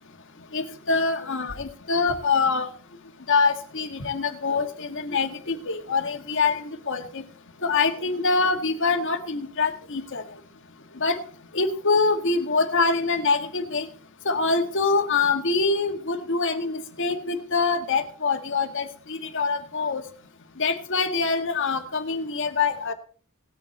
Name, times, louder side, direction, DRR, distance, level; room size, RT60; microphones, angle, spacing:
voice 1, 0.5-2.7 3.3-7.2 7.6-10.2 11.0-11.2 11.5-13.8 14.2-20.0 20.6-22.9, left 4 dB, 60° left, 6 dB, 1.6 m, -24 dB
18.5 x 6.5 x 4.1 m, 0.42 s
head